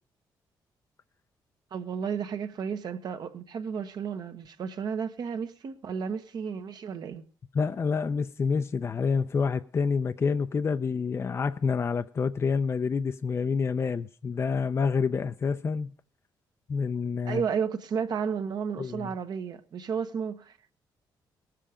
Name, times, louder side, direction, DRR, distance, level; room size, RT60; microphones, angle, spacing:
voice 1, 1.7-7.2 17.2-20.6, right 6 dB, 60° right, 1.2 m, -32 dB
voice 2, 7.5-15.9 16.7-17.4 18.8-19.1, left 5 dB, 35° left, 0.5 m, -28 dB
19.0 x 7.6 x 5.0 m
cardioid pair, 115°, 8 cm